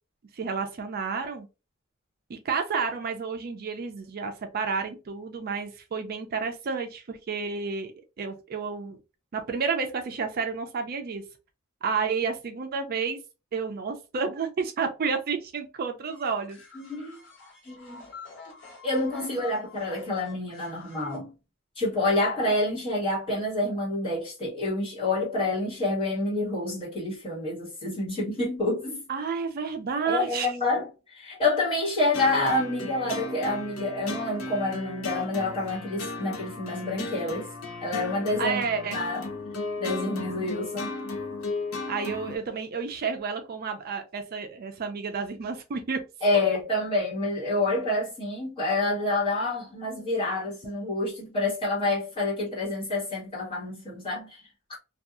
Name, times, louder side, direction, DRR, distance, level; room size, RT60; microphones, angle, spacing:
voice 1, 0.3-1.5 2.3-9.0 9.3-11.2 11.8-13.2 13.5-16.6 19.5-19.7 29.1-30.5 38.4-39.0 41.9-46.0, right 5 dB, 45° right, 0.4 m, -31 dB
sound 1, 16.1-21.2, left 4 dB, 60° left, 1.1 m, -48 dB
voice 2, 16.7-17.2 17.6-18.0 18.8-21.3 21.7-29.0 30.0-37.5 37.8-38.6 38.9-39.3 39.8-40.9 46.2-54.4, left 2 dB, 25° left, 1.5 m, -28 dB
sound 2, 32.1-42.4, left 2 dB, 85° left, 0.7 m, -35 dB
2.6 x 2.3 x 2.4 m
head